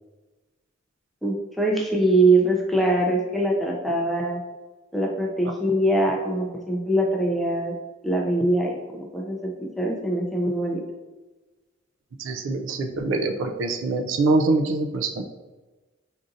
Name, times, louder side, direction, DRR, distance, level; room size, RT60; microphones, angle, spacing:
voice 1, 1.2-4.4 4.9-7.7 8.0-10.8, right 1 dB, ahead, -1 dB, 0.4 m, -23 dB
voice 2, 12.2-15.2, right 3 dB, 75° right, 5 dB, 0.4 m, -24 dB
4.8 x 2.7 x 2.5 m, 1.2 s
head